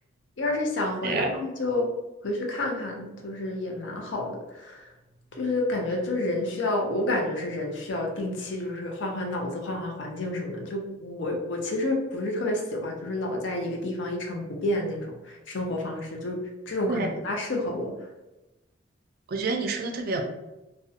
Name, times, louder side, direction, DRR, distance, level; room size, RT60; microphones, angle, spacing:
voice 1, 0.4-1.9 2.2-4.8 5.3-16.4 16.7-17.9, left 2 dB, 70° left, 1 dB, 0.5 m, -29 dB
voice 2, 19.3-20.2, right 3 dB, 50° right, 4 dB, 0.3 m, -28 dB
2.4 x 2.1 x 2.6 m, 1.0 s
head